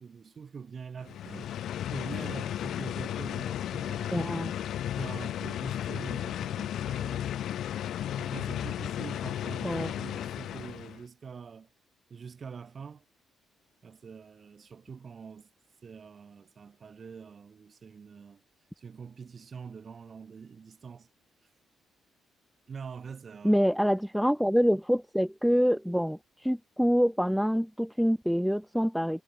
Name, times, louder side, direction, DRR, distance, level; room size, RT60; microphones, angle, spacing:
voice 1, 0.0-4.3 4.9-7.3 8.2-11.7 12.1-13.1 13.8-15.5 15.8-18.4 18.8-21.1 22.7-23.6, right 6 dB, 45° right, 6.5 m, -44 dB
sound 1, 1.0-11.0, left 11 dB, 70° left, 0.8 m, -34 dB
voice 2, 4.1-4.5 9.6-9.9 23.4-29.2, equal, ahead, 0.6 m, -26 dB
cardioid pair, 90°, 0 cm